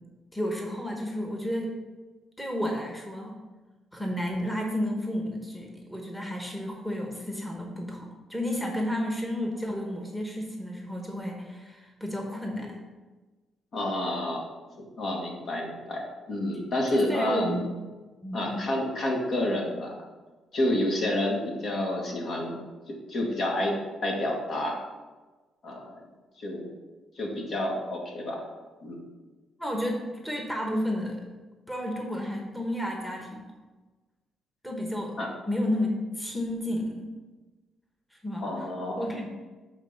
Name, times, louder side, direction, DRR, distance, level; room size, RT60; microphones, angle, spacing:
voice 1, 0.3-1.8 2.4-3.4 3.9-12.8 16.9-17.6 18.2-18.7 29.6-31.2 31.7-33.4 34.6-35.2 35.5-37.1 38.1-38.7 39.0-39.3, equal, 5° left, 1 dB, 1.2 m, -32 dB
voice 2, 13.7-14.4 15.0-17.6 18.3-19.9 20.5-24.8 25.6-26.0 26.4-26.7 27.2-28.4 28.8-29.0 35.2-35.3 38.4-39.0, left 1 dB, 55° left, -1 dB, 1.9 m, -29 dB
8.0 x 3.8 x 5.7 m, 1.2 s
cardioid pair, 90°, 0 cm